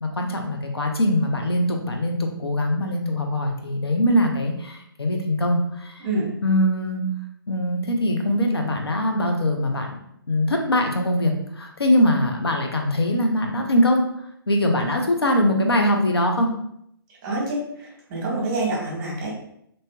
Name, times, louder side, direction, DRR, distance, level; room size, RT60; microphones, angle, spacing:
voice 1, 0.0-6.1 6.4-7.0 7.5-9.9 10.3-14.0 14.5-16.5, left 1 dB, 85° left, 3 dB, 0.6 m, -22 dB
voice 2, 17.2-19.3, right 2 dB, 25° right, -4 dB, 1.1 m, -27 dB
3.0 x 2.7 x 2.3 m, 0.73 s
figure-of-eight pair, 135°, 13 cm